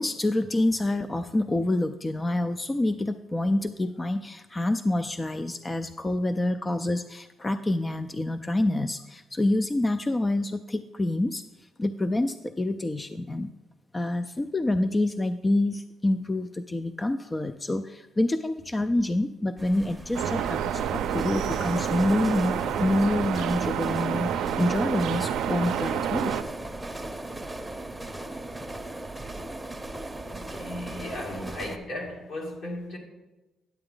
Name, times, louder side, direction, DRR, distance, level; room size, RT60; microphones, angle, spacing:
voice 1, 0.0-11.4 11.8-13.5 13.9-26.4, left 1 dB, 20° left, 10 dB, 0.3 m, -27 dB
sound 1, 19.6-31.8, right 2 dB, 10° right, 0.7 m, -37 dB
sound 2, 20.1-26.4, right 9 dB, 90° right, 0.4 m, -28 dB
voice 2, 30.3-33.0, left 1 dB, 65° left, -2 dB, 2.6 m, -36 dB
10.0 x 7.8 x 3.8 m, 1.1 s
cardioid pair, 90°, 0 cm